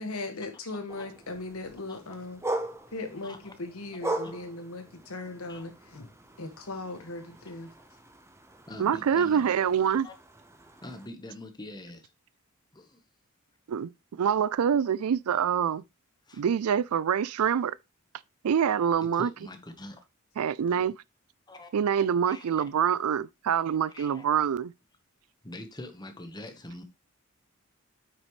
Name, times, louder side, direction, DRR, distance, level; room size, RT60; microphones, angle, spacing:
voice 1, 0.0-2.4 2.9-6.1 6.4-7.7, left 2 dB, 75° left, 1.7 m, -38 dB
sound 1, 0.9-11.1, right 2 dB, 10° right, 0.9 m, -40 dB
voice 2, 3.2-3.5 4.2-4.3 5.5-5.7 8.7-9.6 10.0-10.1 10.8-12.1 12.7-13.0 16.3-16.4 19.1-20.0 21.5-21.7 22.0-22.5 23.9-24.2 25.4-26.8, left 1 dB, 20° left, 1.1 m, -44 dB
voice 3, 8.8-10.1 13.7-15.8 16.3-17.8 18.4-19.3 20.4-21.0 21.7-24.7, right 8 dB, 80° right, 0.4 m, -25 dB
8.4 x 6.0 x 3.1 m
head